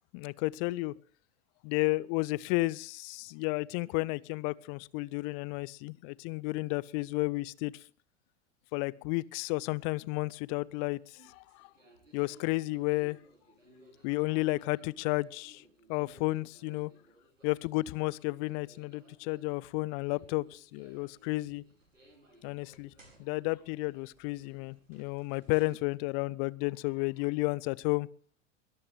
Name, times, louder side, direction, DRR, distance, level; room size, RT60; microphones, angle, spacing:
voice 1, 0.1-0.9 1.6-7.7 8.7-11.7 12.1-13.2 14.0-15.6 15.9-16.9 17.4-21.6 22.4-22.9 23.2-28.1, left 23 dB, 35° left, 0.6 m, -32 dB
sound 1, 10.6-25.8, right 1 dB, 80° right, 4.4 m, -61 dB
22.5 x 14.0 x 3.3 m
figure-of-eight pair, 85°, 38 cm